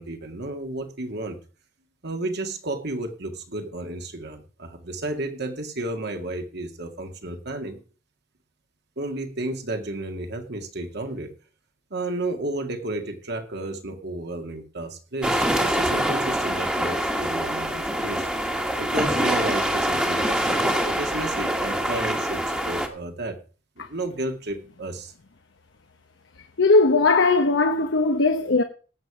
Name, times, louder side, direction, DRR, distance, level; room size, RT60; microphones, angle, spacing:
voice 1, 0.0-1.4 2.0-7.8 9.0-11.3 11.9-18.3 18.8-23.4 23.9-25.1, right 2 dB, 60° right, 2.0 m, -32 dB
sound 1, 15.2-22.9, right 1 dB, 5° right, 1.6 m, -25 dB
voice 2, 26.6-28.6, left 3 dB, 65° left, 0.9 m, -19 dB
17.5 x 7.2 x 4.8 m
head